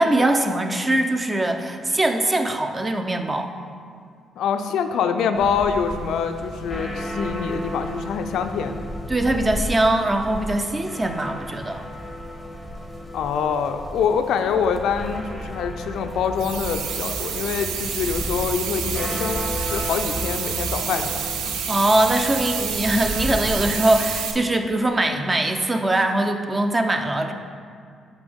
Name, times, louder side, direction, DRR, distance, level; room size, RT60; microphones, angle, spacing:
voice 1, 0.0-3.5 9.1-11.8 21.7-27.3, right 1 dB, 20° right, 6 dB, 0.5 m, -22 dB
voice 2, 4.4-8.8 13.1-21.6, left 6 dB, 80° left, 7 dB, 0.3 m, -25 dB
sound 1, 5.3-23.8, equal, ahead, 0.8 m, -34 dB
Traffic noise roadway noise, 14.5-21.1, right 1 dB, 70° right, 1.5 m, -37 dB
sound 2, 16.4-24.3, right 7 dB, 90° right, 0.4 m, -29 dB
6.0 x 5.1 x 3.6 m, 2.2 s
cardioid pair, 90°, 0 cm